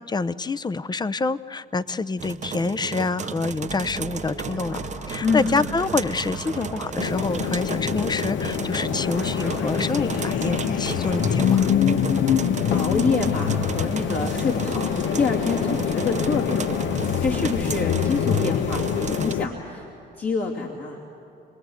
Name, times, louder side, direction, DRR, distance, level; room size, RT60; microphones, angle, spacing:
voice 1, 0.0-11.7, left 3 dB, 20° left, 15 dB, 0.6 m, -27 dB
sound 1, 2.2-19.3, right 7 dB, 35° right, 0.7 m, -34 dB
sound 2, 3.5-11.6, equal, 90° left, 4.7 m, -39 dB
voice 2, 5.2-5.5 12.7-19.9 20.2-21.0, left 4 dB, 55° left, -2 dB, 2.8 m, -27 dB
sound 3, 7.0-19.5, left 8 dB, 70° left, 0.9 m, -25 dB
27.5 x 19.5 x 8.0 m, 3.0 s
cardioid pair, 90°, 20 cm